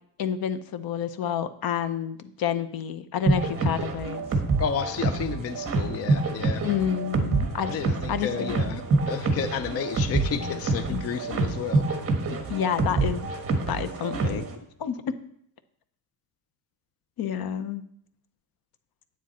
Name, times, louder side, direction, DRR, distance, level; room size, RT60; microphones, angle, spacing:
voice 1, 0.2-4.2 6.6-8.8 10.4-10.6 10.9-11.0 12.2-13.3 13.7-14.4 14.8-15.0 17.2-17.8, left 9 dB, 55° left, 12 dB, 0.8 m, -29 dB
sound 1, 3.3-14.5, right 3 dB, 30° right, 1.4 m, -27 dB
voice 2, 4.6-6.6 7.7-8.8 9.1-11.8, left 7 dB, 35° left, 10 dB, 0.4 m, -31 dB
9.8 x 8.8 x 4.2 m, 0.68 s
cardioid pair, 165°, 42 cm